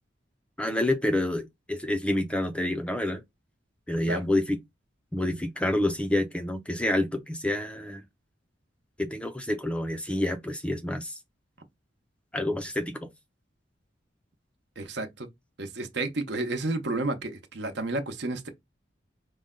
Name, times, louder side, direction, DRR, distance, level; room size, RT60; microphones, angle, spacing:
voice 1, 0.6-3.2 3.9-4.6 5.1-8.0 9.0-11.2 12.3-13.1, left 1 dB, 5° left, 0.4 m, -28 dB
voice 2, 14.8-15.3 15.6-18.5, right 2 dB, 60° right, 0.8 m, -31 dB
5.1 x 2.2 x 3.7 m
head